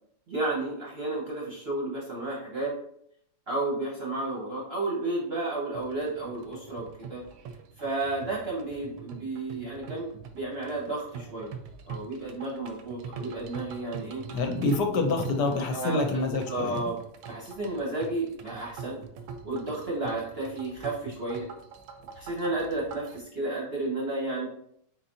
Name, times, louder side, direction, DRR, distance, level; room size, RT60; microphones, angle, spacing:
voice 1, 0.3-2.8 3.5-7.2 7.8-11.6 11.9-14.2 15.7-16.0 16.5-17.0 17.3-19.0 19.4-21.5 22.1-24.5, right 2 dB, 45° right, -3 dB, 0.8 m, -32 dB
sound 1, 5.7-23.2, right 6 dB, 80° right, 1.3 m, -44 dB
voice 2, 14.3-16.8, left 3 dB, 70° left, 4 dB, 1.2 m, -27 dB
4.4 x 4.0 x 2.6 m, 0.70 s
omnidirectional pair, 2.1 m